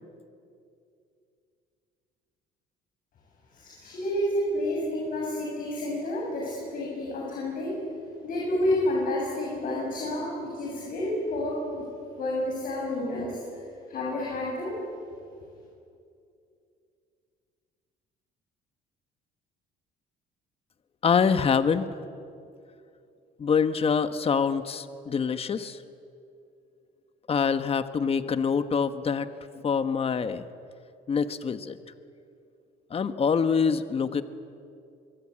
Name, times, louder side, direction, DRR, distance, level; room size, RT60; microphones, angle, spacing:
voice 1, 3.5-7.8 8.2-11.8 12.2-14.8, left 1 dB, 55° left, -3 dB, 7.5 m, -30 dB
voice 2, 21.0-21.9 23.4-25.8 27.3-29.3 29.6-30.5 31.1-31.8 32.9-34.2, left 6 dB, 35° left, 10 dB, 1.3 m, -25 dB
25.0 x 23.5 x 8.7 m, 2.5 s
cardioid pair, 110°, 17 cm